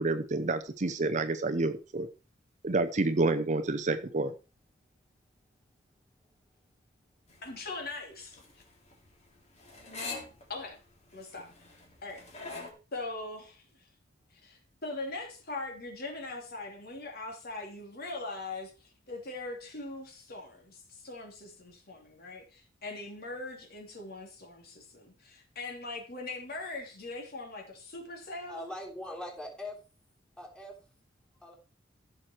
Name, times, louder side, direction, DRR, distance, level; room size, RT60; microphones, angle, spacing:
voice 1, 0.0-2.1 2.6-4.3, right 2 dB, 35° right, 0.7 m, -29 dB
sound 1, 7.3-12.7, left 3 dB, 35° left, 3.0 m, -44 dB
voice 2, 7.4-8.4 10.5-10.8 11.1-11.5 12.0-12.6 12.9-13.9 14.3-28.7, left 2 dB, 50° left, 3.1 m, -41 dB
voice 3, 28.5-29.8 30.4-30.8 31.4-31.5, left 1 dB, 5° left, 3.4 m, -41 dB
14.5 x 6.4 x 4.5 m
head